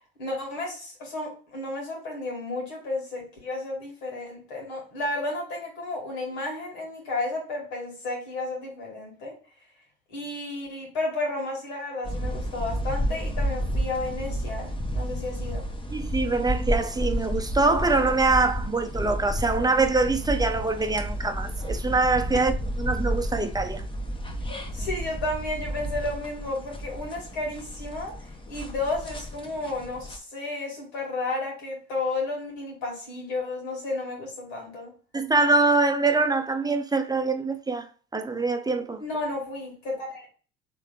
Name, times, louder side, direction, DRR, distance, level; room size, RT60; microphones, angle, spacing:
voice 1, 0.2-9.3 10.1-15.7 22.3-22.4 24.5-28.2 28.5-34.9 39.0-40.3, left 2 dB, 75° left, 2.2 m, -32 dB
sound 1, 12.0-30.2, equal, 15° left, 0.9 m, -31 dB
voice 2, 15.9-22.5 22.8-23.8 35.1-37.9 38.1-39.0, right 3 dB, 10° right, 0.7 m, -24 dB
3.6 x 3.4 x 3.6 m
hypercardioid pair, 60°, 31 cm